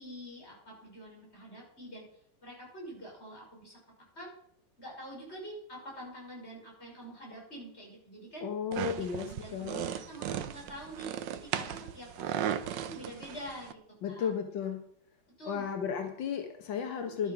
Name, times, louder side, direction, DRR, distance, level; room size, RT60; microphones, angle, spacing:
voice 1, 0.0-2.0 2.4-3.8 4.1-4.3 4.8-8.5 8.9-13.8 14.1-14.3 15.4-15.7 17.0-17.3, right 1 dB, 35° left, -3 dB, 6.1 m, -46 dB
voice 2, 8.4-9.9 14.0-14.8 15.5-17.3, left 7 dB, 90° left, 5 dB, 1.9 m, -34 dB
sound 1, 8.7-13.7, right 10 dB, 75° right, 1.4 m, -37 dB
12.0 x 11.0 x 5.9 m, 0.67 s
omnidirectional pair, 2.0 m